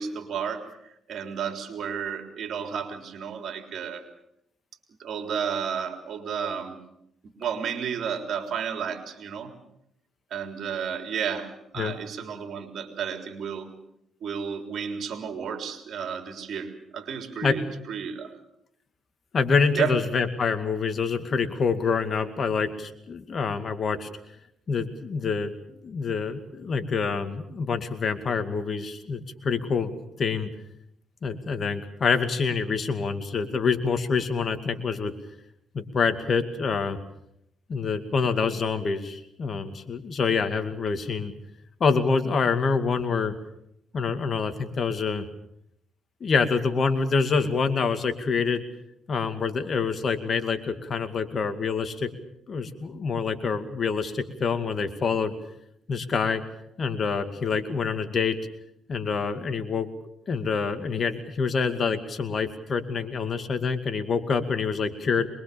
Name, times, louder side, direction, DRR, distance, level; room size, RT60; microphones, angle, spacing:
voice 1, 0.0-4.0 5.0-6.8 7.2-9.5 10.3-13.7 14.2-18.4 19.7-20.0, right 7 dB, 65° right, 5 dB, 3.6 m, -32 dB
voice 2, 19.3-24.1 24.7-30.5 31.2-35.1 35.7-37.0 37.7-41.3 41.8-43.3 43.9-45.2 46.2-48.6 49.1-52.1 52.5-55.3 55.9-56.4 56.8-58.4 58.9-59.9 60.3-65.3, left 5 dB, 45° left, 8 dB, 2.3 m, -26 dB
24.0 x 22.0 x 7.0 m, 0.78 s
cardioid pair, 90°, 0 cm